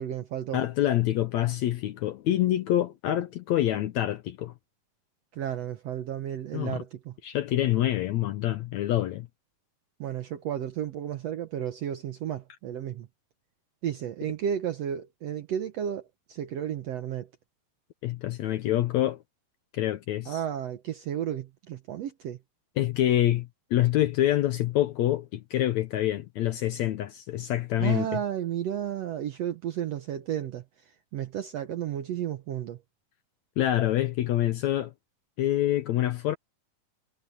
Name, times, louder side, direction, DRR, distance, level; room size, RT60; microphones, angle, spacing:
voice 1, 0.0-0.6 5.4-7.1 10.0-13.1 13.8-16.0 16.3-17.3 20.3-22.4 27.8-30.6 31.1-32.8, right 10 dB, 70° right, 1.6 m, -32 dB
voice 2, 0.5-4.5 6.5-6.8 7.2-9.3 18.0-19.2 19.7-20.4 22.8-28.2 33.6-34.9 35.4-36.4, left 13 dB, 75° left, 1.8 m, -26 dB
omnidirectional pair, 4.0 m